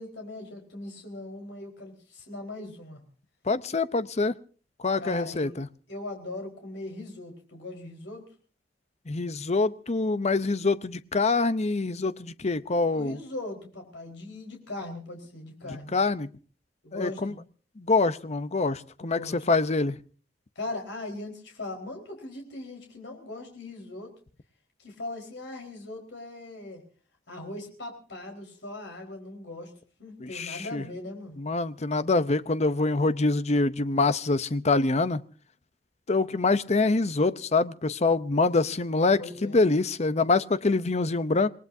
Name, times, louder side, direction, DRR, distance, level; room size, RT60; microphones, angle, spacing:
voice 1, 0.0-3.0 5.0-5.5 5.9-8.3 12.9-15.9 16.8-17.4 19.0-19.6 20.5-24.1 24.8-26.8 27.3-29.7 30.0-31.4 38.9-39.6, left 2 dB, 75° left, 2 dB, 4.5 m, -39 dB
voice 2, 3.5-4.3 4.8-5.7 9.1-13.2 15.9-16.3 16.9-17.3 17.8-19.2 19.5-20.0 30.2-30.8 31.4-35.2 36.1-41.5, left 3 dB, 40° left, 14 dB, 0.7 m, -25 dB
27.0 x 19.0 x 2.7 m, 0.40 s
head